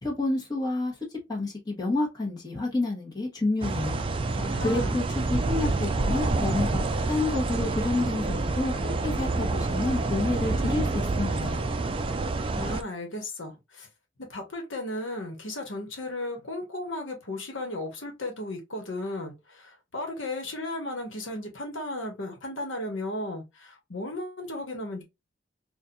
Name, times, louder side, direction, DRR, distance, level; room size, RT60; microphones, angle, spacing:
voice 1, 0.0-0.9 1.3-4.0 4.6-5.0 5.3-11.6, left 2 dB, 20° left, 1.2 m, -29 dB
sound 1, 3.6-12.8, right 3 dB, 25° right, 0.3 m, -28 dB
voice 2, 4.3-5.0 12.5-13.9 14.3-25.0, left 1 dB, 75° left, 1.2 m, -35 dB
4.3 x 2.4 x 2.5 m
head